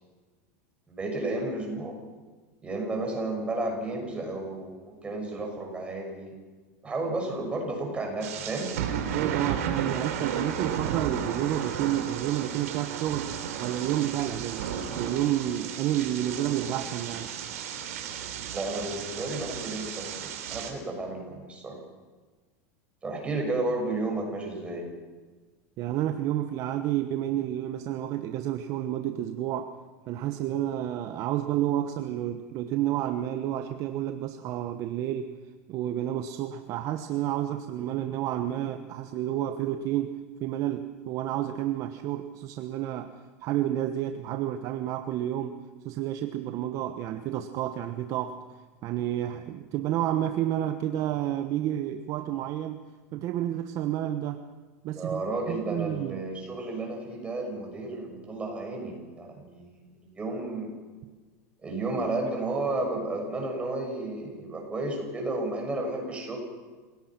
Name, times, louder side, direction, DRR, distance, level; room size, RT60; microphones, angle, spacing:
voice 1, 0.9-2.0 2.6-6.3 6.8-8.7 18.5-21.8 23.0-24.9 54.9-60.7 61.6-66.4, right 2 dB, 15° right, 1 dB, 6.6 m, -32 dB
sound 1, 8.2-20.7, right 8 dB, 80° right, 3.5 m, -34 dB
voice 2, 9.1-13.3 13.6-14.6 15.0-17.3 25.8-29.7 30.1-35.4 35.7-48.4 48.8-52.8 53.1-54.4 54.8-55.2 55.5-56.2, right 12 dB, 45° right, 8 dB, 1.1 m, -30 dB
28.5 x 18.0 x 6.1 m, 1.4 s
supercardioid pair, 140°, 8 cm